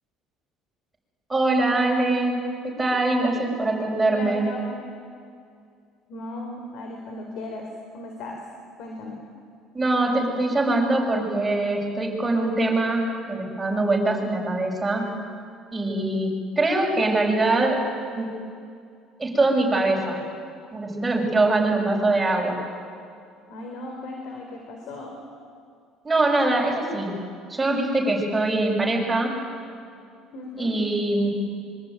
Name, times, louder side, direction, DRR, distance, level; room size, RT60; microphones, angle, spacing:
voice 1, 1.3-4.5 9.7-15.1 15.7-17.8 18.1-18.3 19.2-20.2 20.7-22.6 26.0-27.2 27.5-29.4 30.6-31.3, right 2 dB, 10° right, -2 dB, 6.6 m, -23 dB
voice 2, 4.1-4.8 6.1-7.7 7.9-8.4 8.8-9.2 21.4-21.6 21.9-22.1 23.5-25.2 30.3-30.7, left 2 dB, 65° left, 2 dB, 4.2 m, -37 dB
25.0 x 23.5 x 9.5 m, 2.3 s
cardioid pair, 130°, 0 cm